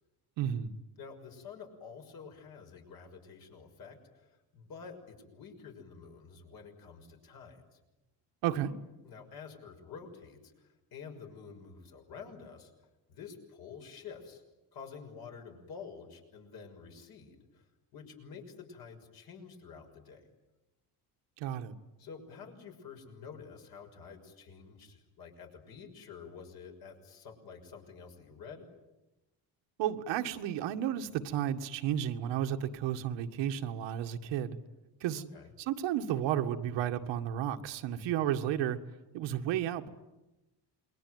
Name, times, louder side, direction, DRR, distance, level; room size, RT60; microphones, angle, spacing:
voice 1, 0.4-0.7 8.4-8.7 21.4-21.7 29.8-34.6 35.0-35.2 35.6-38.8 39.1-39.9, right 10 dB, 90° right, 6 dB, 1.9 m, -32 dB
voice 2, 1.0-7.8 9.0-12.7 13.1-14.4 14.7-17.6 17.9-20.2 22.0-28.7 35.1-35.5, left 6 dB, 55° left, 3 dB, 6.3 m, -49 dB
28.0 x 22.0 x 9.4 m, 1.0 s
cardioid pair, 150°, 43 cm